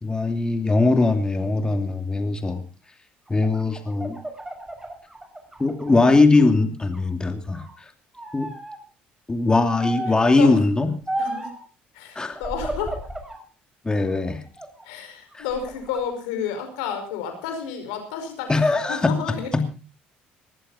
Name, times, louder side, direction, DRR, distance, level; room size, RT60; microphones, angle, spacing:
voice 1, 0.0-2.6 3.3-4.2 5.6-7.6 8.3-8.5 9.3-10.9 12.1-12.4 13.8-14.4 15.3-15.4 18.5-19.2 19.5-19.6, left 3 dB, 20° left, 6 dB, 2.7 m, -20 dB
sound 1, 3.3-6.5 6.9-7.7 8.1-8.8 9.8-10.3 11.1-11.6 12.4-13.4 13.9-14.9 15.3-16.0, right 1 dB, 15° right, 6.2 m, -34 dB
voice 2, 10.1-10.6 11.2-11.5 11.9-13.0 14.8-19.6, left 7 dB, 85° left, 7 dB, 5.3 m, -31 dB
20.0 x 14.5 x 4.2 m, 0.35 s
supercardioid pair, 70°, 4 cm